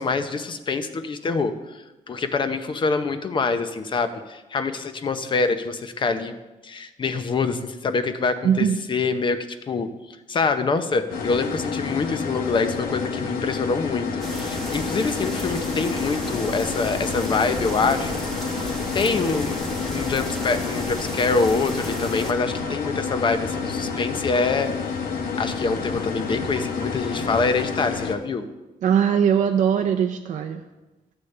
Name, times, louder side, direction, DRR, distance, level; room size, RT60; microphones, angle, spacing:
voice 1, 0.0-1.8 2.1-6.4 6.6-9.9 10.3-19.6 19.9-24.7 25.4-28.5, left 4 dB, 35° left, 9 dB, 0.7 m, -25 dB
voice 2, 8.4-8.8 28.8-30.6, right 8 dB, 60° right, 5 dB, 0.5 m, -20 dB
sound 1, 11.1-28.2, left 5 dB, 85° left, 0.9 m, -29 dB
sound 2, 14.2-22.3, right 1 dB, ahead, 1.2 m, -34 dB
sound 3, 17.1-27.5, right 1 dB, 30° right, 1.0 m, -41 dB
13.5 x 8.0 x 3.3 m, 1.1 s
cardioid pair, 135°, 14 cm